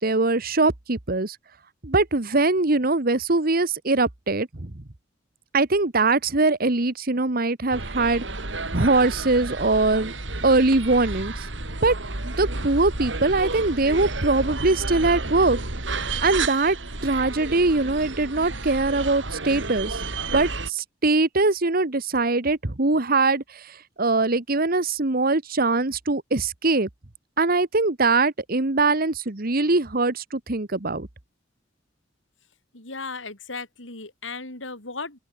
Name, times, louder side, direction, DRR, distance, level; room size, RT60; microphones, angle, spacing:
voice 1, 0.0-1.4 1.8-4.8 5.5-8.2 8.7-10.1 10.4-11.5 11.8-11.9 12.2-15.6 16.2-16.8 17.0-20.0 20.3-26.9 27.4-31.1, right 3 dB, 50° right, 1.5 m, -22 dB
sound 1, 7.7-20.7, right 3 dB, 75° right, 3.5 m, -31 dB
voice 2, 32.7-35.2, left 3 dB, 85° left, 6.5 m, -36 dB
open air
head